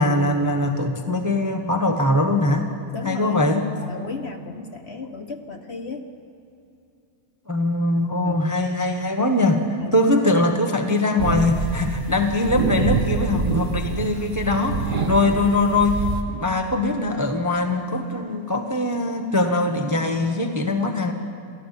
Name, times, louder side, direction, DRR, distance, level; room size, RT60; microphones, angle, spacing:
voice 1, 0.0-2.7 3.0-3.7 7.5-9.7 9.9-21.1, left 2 dB, 15° right, 5 dB, 0.9 m, -22 dB
voice 2, 2.9-3.5 3.8-6.1 8.2-8.5 9.8-10.0, left 4 dB, 45° left, 6 dB, 1.2 m, -34 dB
sound 1, 11.2-16.2, right 4 dB, 30° right, 1.5 m, -26 dB
28.5 x 13.5 x 7.6 m, 2.6 s
omnidirectional pair, 1.7 m